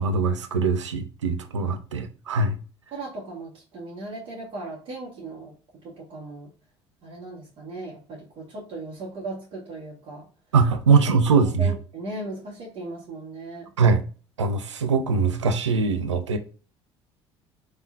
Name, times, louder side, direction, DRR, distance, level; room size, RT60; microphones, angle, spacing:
voice 1, 0.0-2.6 10.5-11.7 13.8-14.0 14.4-16.4, right 4 dB, 80° right, 0.4 m, -22 dB
voice 2, 2.9-5.5 5.8-6.5 7.0-10.3 10.9-13.7, right 2 dB, 45° right, 1.7 m, -37 dB
3.5 x 3.3 x 2.5 m
figure-of-eight pair, 60°, 15 cm